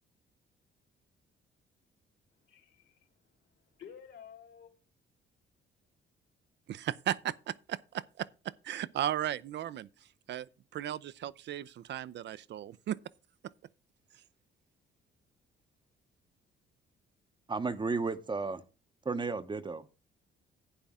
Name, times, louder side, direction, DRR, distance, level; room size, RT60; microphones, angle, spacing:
voice 1, 2.4-4.7, left 8 dB, 75° left, 3.0 m, -53 dB
voice 2, 6.7-9.9 10.3-10.5 10.7-13.0, right 11 dB, 60° right, 0.5 m, -36 dB
voice 3, 17.5-18.6 19.0-19.9, right 4 dB, 25° right, 0.8 m, -33 dB
11.5 x 8.9 x 3.6 m
cardioid pair, 90°, 20 cm